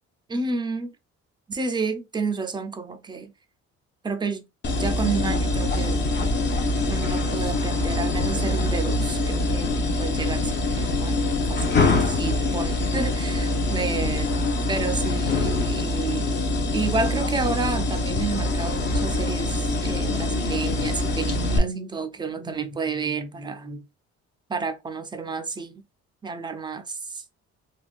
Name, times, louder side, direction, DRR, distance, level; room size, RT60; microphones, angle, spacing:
voice 1, 0.3-0.9 1.5-3.3 4.0-4.5 4.8-6.0 6.9-14.3 14.7-16.3 16.7-23.9 24.5-25.8 26.2-27.2, right 4 dB, 15° right, 0.4 m, -30 dB
sound 1, 4.6-21.6, left 2 dB, 40° left, 0.7 m, -24 dB
3.5 x 2.3 x 2.4 m
cardioid pair, 120°, 29 cm